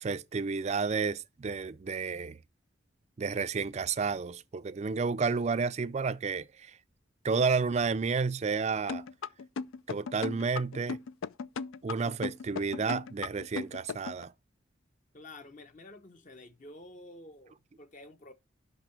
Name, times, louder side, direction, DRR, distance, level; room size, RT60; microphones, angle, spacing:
voice 1, 0.0-2.4 3.2-6.8 7.2-9.0 9.9-11.0 11.8-14.3, right 5 dB, 35° right, 0.4 m, -31 dB
sound 1, 8.9-14.2, left 5 dB, 85° left, 0.4 m, -36 dB
voice 2, 15.1-18.3, left 2 dB, 40° left, 0.8 m, -50 dB
5.9 x 5.7 x 6.8 m
head